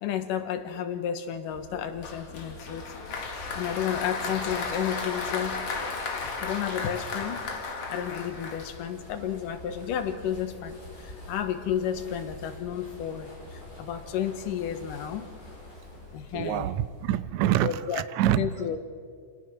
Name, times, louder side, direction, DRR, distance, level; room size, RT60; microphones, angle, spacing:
voice 1, 0.0-2.9 3.6-5.6 6.2-15.3 16.1-16.7 17.6-18.0 18.4-18.8, left 9 dB, 90° left, 2.8 m, -32 dB
sound 1, 1.5-17.2, left 2 dB, 25° left, 6.0 m, -46 dB
Applause, 2.0-9.1, left 4 dB, 50° left, 2.9 m, -34 dB
voice 2, 16.3-18.5, right 13 dB, 75° right, 1.8 m, -26 dB
28.0 x 19.0 x 6.1 m
omnidirectional pair, 3.7 m